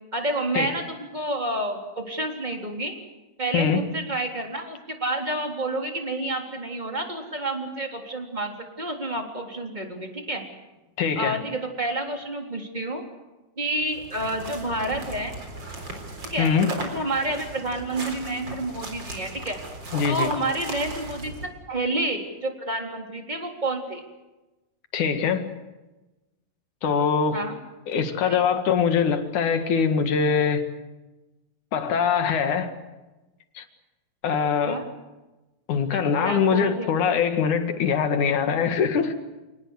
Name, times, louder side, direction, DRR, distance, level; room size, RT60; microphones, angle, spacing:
voice 1, 0.1-2.9 3.4-10.4 11.1-13.0 13.6-15.3 16.2-16.5 16.9-19.6 20.1-24.0 27.3-27.6 28.2-28.5 34.6-34.8 35.9-36.9, right 2 dB, 10° right, 3 dB, 3.3 m, -29 dB
voice 2, 3.5-3.8 11.0-11.4 16.4-16.7 19.9-20.3 24.9-25.5 26.8-27.4 27.9-30.7 31.7-32.8 33.5-33.6 34.2-34.8 35.7-39.1, left 6 dB, 60° left, 8 dB, 3.1 m, -23 dB
sound 1, 13.8-21.5, right 2 dB, 30° right, 4.4 m, -37 dB
28.0 x 19.0 x 8.2 m, 1.1 s
omnidirectional pair, 4.2 m